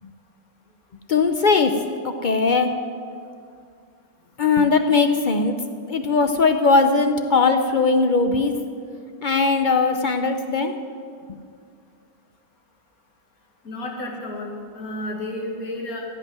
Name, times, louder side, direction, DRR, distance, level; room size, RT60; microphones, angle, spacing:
voice 1, 1.1-1.8 2.0-2.7 4.4-5.5 5.9-8.5 9.2-10.7, left 4 dB, 60° left, 7 dB, 0.5 m, -19 dB
voice 2, 13.6-16.1, left 1 dB, 75° left, 0 dB, 2.3 m, -31 dB
15.5 x 5.7 x 9.3 m, 2.2 s
omnidirectional pair, 1.5 m